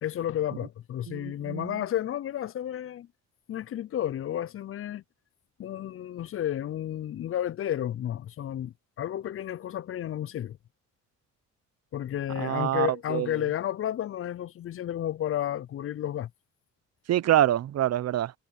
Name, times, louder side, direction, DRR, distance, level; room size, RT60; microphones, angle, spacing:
voice 1, 0.0-3.1 3.5-5.0 5.6-10.6 11.9-16.3, left 11 dB, 45° left, 0.5 m, -32 dB
voice 2, 1.1-1.8 12.4-13.3 17.1-18.3, right 12 dB, 60° right, 0.7 m, -26 dB
cardioid pair, 90°, 30 cm